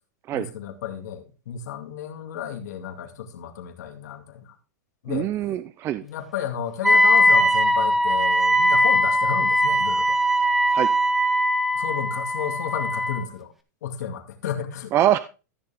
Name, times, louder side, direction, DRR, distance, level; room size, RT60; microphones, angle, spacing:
voice 1, 0.3-4.5 5.0-5.3 6.0-10.2 11.7-13.5 13.8-14.9, left 9 dB, 80° left, 2.3 m, -32 dB
voice 2, 5.1-6.0 10.7-10.9 14.9-15.2, right 12 dB, 25° right, 0.5 m, -23 dB
Wind instrument woodwind instrument, 6.8-13.3, equal, 5° right, 1.0 m, -20 dB
14.0 x 6.8 x 3.5 m
supercardioid pair, 150°, 9 cm